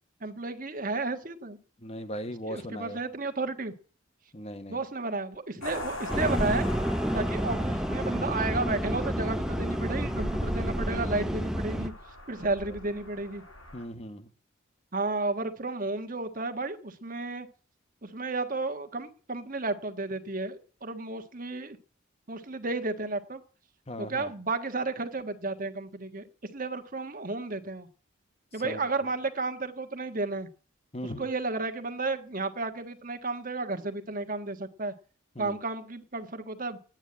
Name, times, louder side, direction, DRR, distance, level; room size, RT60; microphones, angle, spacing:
voice 1, 0.2-1.6 2.5-3.7 4.7-6.7 7.1-11.9 12.3-13.4 14.9-17.5 18.0-21.8 22.3-23.4 24.0-26.3 26.5-27.9 28.5-30.5 31.2-34.9 35.4-36.8, right 3 dB, 40° right, 1.4 m, -32 dB
voice 2, 1.8-3.0 4.3-4.8 12.7-12.8 13.7-14.3 23.9-24.3 28.5-28.9 30.9-31.3 35.3-35.6, equal, 30° left, 1.2 m, -38 dB
sound 1, 5.6-13.8, left 2 dB, 85° left, 6.5 m, -42 dB
sound 2, 6.1-11.9, equal, 5° right, 0.6 m, -29 dB
9.3 x 9.0 x 9.9 m
head